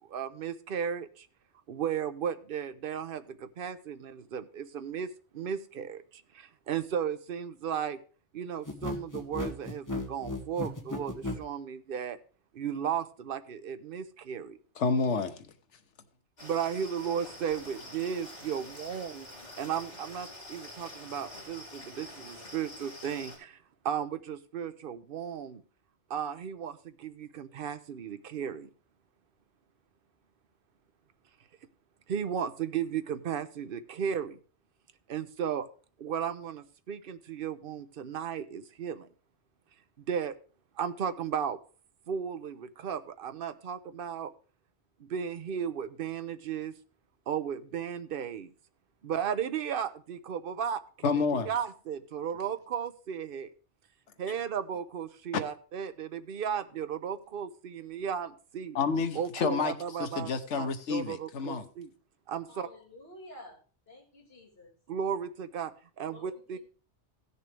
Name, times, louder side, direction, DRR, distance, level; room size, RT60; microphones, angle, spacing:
voice 1, 0.1-1.3 1.7-5.1 5.3-8.0 8.3-12.2 12.5-14.6 16.4-19.3 19.6-23.6 23.8-25.6 26.1-28.7 32.1-34.4 35.1-35.7 36.0-39.1 40.0-40.4 40.8-41.6 42.1-44.3 45.0-46.7 47.3-48.5 49.0-53.5 54.2-58.8 59.1-61.9 62.3-62.7 64.9-66.6, right 8 dB, 55° right, 0.9 m, -35 dB
sound 1, 8.6-11.4, left 2 dB, 15° left, 1.3 m, -35 dB
voice 2, 14.8-15.5 51.0-51.5 58.7-61.7, left 5 dB, 85° left, 1.3 m, -29 dB
sound 2, 16.4-23.4, left 1 dB, 40° left, 4.1 m, -46 dB
voice 3, 62.5-63.6 63.9-64.7 66.0-66.6, left 2 dB, 60° left, 3.7 m, -50 dB
16.0 x 6.8 x 3.3 m
omnidirectional pair, 1.2 m